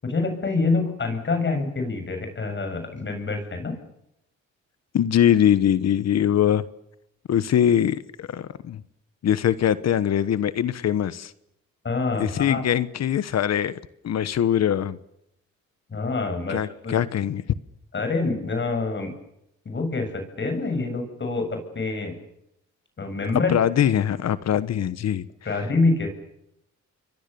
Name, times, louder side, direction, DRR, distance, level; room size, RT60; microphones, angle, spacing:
voice 1, 0.0-3.8 11.8-12.6 15.9-17.0 17.9-19.1 19.6-22.2 23.0-23.6 25.4-26.1, left 3 dB, 40° left, 7 dB, 7.7 m, -26 dB
voice 2, 4.9-6.6 7.3-8.8 9.2-11.3 12.2-13.8 14.0-15.0 16.5-17.4 23.5-25.3, left 10 dB, 60° left, 15 dB, 1.3 m, -22 dB
29.0 x 23.5 x 7.0 m, 0.80 s
cardioid pair, 90°, 30 cm